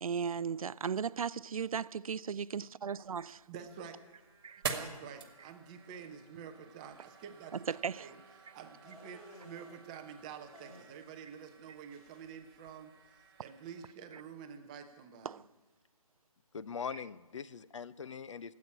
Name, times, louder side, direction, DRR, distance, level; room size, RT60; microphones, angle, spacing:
voice 1, 0.0-3.4 4.4-4.6 7.7-8.1 14.1-14.2 15.2-15.4 16.9-17.0, right 6 dB, 70° right, 0.4 m, -36 dB
sound 1, 3.0-13.9, right 5 dB, 40° right, 1.4 m, -48 dB
voice 2, 3.5-4.0 4.7-8.2 8.5-15.4, right 7 dB, 10° right, 0.5 m, -48 dB
sound 2, 8.8-9.8 10.5-11.3 11.5-12.3, equal, 90° left, 4.2 m, -56 dB
voice 3, 16.5-18.5, left 6 dB, 55° left, 0.5 m, -42 dB
13.0 x 8.4 x 9.8 m
figure-of-eight pair, 155°, 19 cm